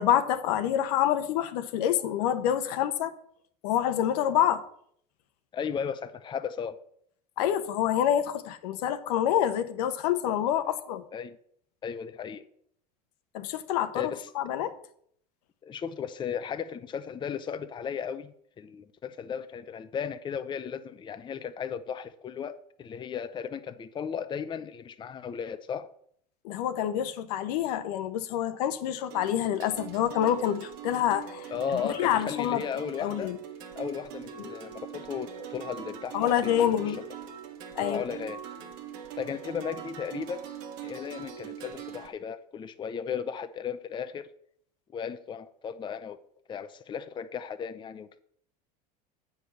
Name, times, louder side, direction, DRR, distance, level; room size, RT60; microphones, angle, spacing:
voice 1, 0.0-3.1 3.6-4.6 7.4-11.0 13.3-14.7 26.4-32.6 33.0-33.4 34.4-34.6 36.1-37.0 37.8-38.0, left 10 dB, 75° left, 0.9 m, -27 dB
voice 2, 5.5-6.8 11.1-11.4 11.8-12.4 13.9-14.3 15.6-25.9 31.5-33.3 33.8-37.1 37.8-38.4 39.2-40.5 40.8-44.3 44.9-46.2 46.5-48.2, left 7 dB, 25° left, 0.6 m, -35 dB
sound 1, 29.1-42.1, right 8 dB, 70° right, 1.6 m, -42 dB
7.9 x 4.9 x 6.9 m
supercardioid pair, 105°, 20 cm